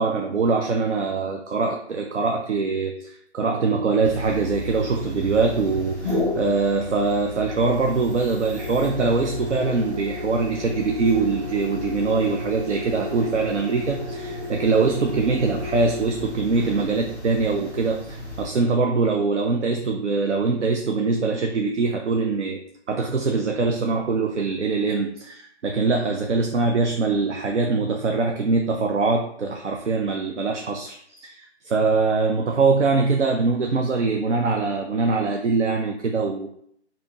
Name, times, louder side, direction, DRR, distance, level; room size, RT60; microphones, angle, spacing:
voice 1, 0.0-22.6 22.9-36.5, right 4 dB, 85° right, 2 dB, 0.5 m, -23 dB
sound 1, 4.0-18.5, left 2 dB, 20° right, 0.7 m, -32 dB
2.8 x 2.7 x 3.7 m, 0.67 s
figure-of-eight pair, 145°, 35 cm